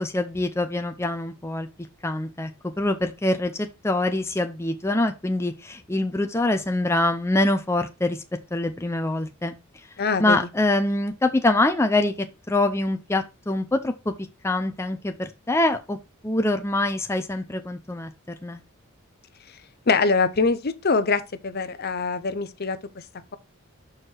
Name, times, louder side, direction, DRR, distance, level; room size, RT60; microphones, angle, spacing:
voice 1, 0.0-1.7 2.0-2.5 2.8-8.2 8.5-9.6 10.2-14.1 14.4-16.0 16.2-18.1 18.4-18.6, left 2 dB, 10° left, 0.6 m, -24 dB
voice 2, 10.0-10.4 19.5-19.6 19.9-23.1, left 4 dB, 50° left, 0.7 m, -24 dB
6.5 x 4.8 x 4.5 m
head